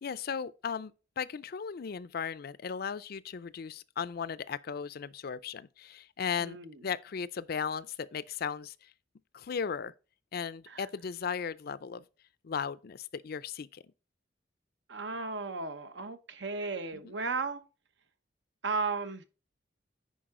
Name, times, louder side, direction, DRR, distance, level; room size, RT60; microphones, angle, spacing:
voice 1, 0.0-8.9 9.3-9.9 10.3-12.0 12.4-13.8 16.9-17.1, left 6 dB, 55° left, 0.4 m, -36 dB
voice 2, 6.4-6.7 10.7-10.8 14.9-17.6 18.6-19.2, right 4 dB, 70° right, 1.0 m, -35 dB
10.0 x 4.7 x 3.7 m
head